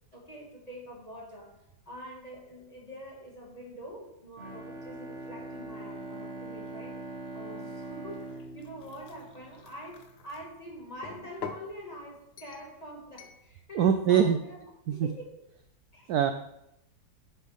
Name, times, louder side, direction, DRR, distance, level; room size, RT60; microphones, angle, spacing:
voice 1, 0.1-1.5 1.9-6.9 7.3-14.6 14.9-15.3 15.9-16.1, equal, 20° left, -2 dB, 1.9 m, -45 dB
Bowed string instrument, 4.4-9.9, right 2 dB, 40° right, 1.4 m, -42 dB
sound 1, 8.1-10.4 11.0-11.7 12.4-12.7 13.2-13.4, left 5 dB, 85° left, 0.5 m, -45 dB
voice 2, 13.7-14.4 14.9-15.1 16.1-16.3, right 8 dB, 70° right, 8 dB, 0.9 m, -23 dB
9.2 x 8.3 x 3.6 m, 0.80 s
omnidirectional pair, 2.1 m